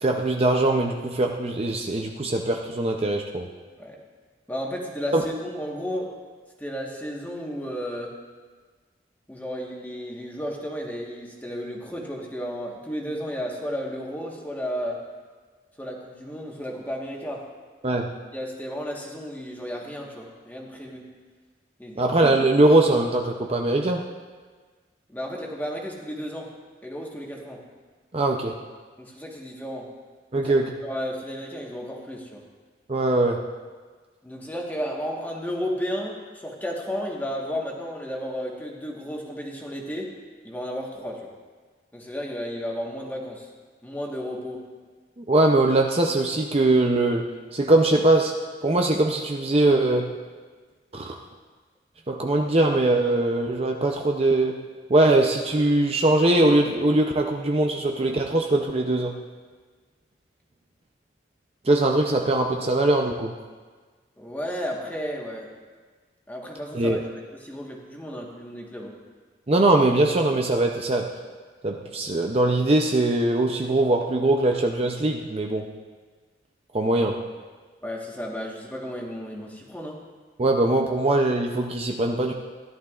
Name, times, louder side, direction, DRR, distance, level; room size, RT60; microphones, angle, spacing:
voice 1, 0.0-3.5 5.1-5.2 17.8-18.1 22.0-24.0 28.1-28.5 30.3-30.7 32.9-33.4 45.2-47.2 47.5-48.3 48.6-50.1 50.9-51.2 52.1-54.6 54.9-59.2 61.6-63.3 66.7-67.0 69.5-71.1 71.6-75.7 76.7-77.2 80.4-82.3, right 2 dB, 30° right, 1 dB, 0.6 m, -21 dB
voice 2, 4.5-6.1 6.6-8.1 9.3-15.0 15.8-17.4 17.9-18.0 18.3-21.1 21.8-22.1 25.1-26.5 26.8-27.6 29.0-29.9 30.3-30.5 30.8-32.4 34.2-40.1 40.4-41.3 41.9-43.5 43.8-44.6 64.2-65.5 66.3-69.0 77.8-80.0, equal, 10° left, -1 dB, 1.3 m, -33 dB
16.5 x 11.5 x 2.4 m, 1.4 s
head